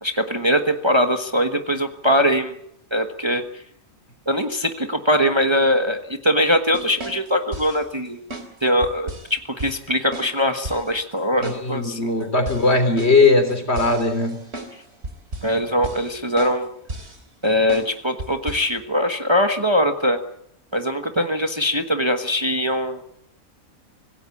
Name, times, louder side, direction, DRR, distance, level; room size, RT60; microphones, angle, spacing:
voice 1, 0.0-2.5 2.9-3.4 4.3-8.2 8.6-12.3 15.4-16.7 17.4-20.2 20.7-23.0, equal, 20° right, 6 dB, 1.3 m, -21 dB
sound 1, 6.7-7.8 8.3-8.5 8.8-9.3 9.6-9.7 10.1-10.3 10.7-10.9 11.4-11.6 11.9-12.0 12.5-14.7 15.0-15.5 15.8-16.1 16.4-16.6 16.9-17.2 17.7-17.9 18.2-18.7, right 1 dB, 50° right, 3.6 m, -34 dB
voice 2, 11.4-14.4, left 3 dB, 50° left, 7 dB, 3.9 m, -19 dB
25.5 x 17.0 x 8.5 m, 0.72 s
omnidirectional pair, 1.4 m